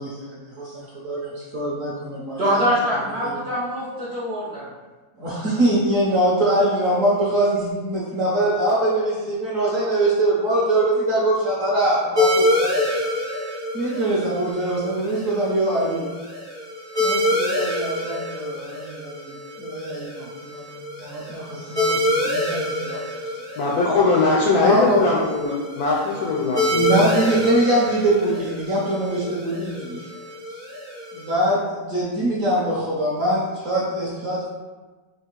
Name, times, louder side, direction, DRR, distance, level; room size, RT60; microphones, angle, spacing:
voice 1, 0.0-2.6 3.2-3.4 5.2-13.0 13.7-16.1 17.0-19.3 19.6-23.0 24.5-25.0 26.7-30.1 31.1-34.5, right 1 dB, 60° right, -6 dB, 0.9 m, -23 dB
voice 2, 2.4-4.7, equal, 80° right, -7 dB, 0.5 m, -24 dB
sound 1, 12.2-31.3, left 1 dB, 25° right, 0.6 m, -27 dB
voice 3, 23.6-27.1 27.3-27.4, left 3 dB, 75° left, -3 dB, 0.8 m, -21 dB
4.3 x 2.7 x 3.0 m, 1.3 s
omnidirectional pair, 2.2 m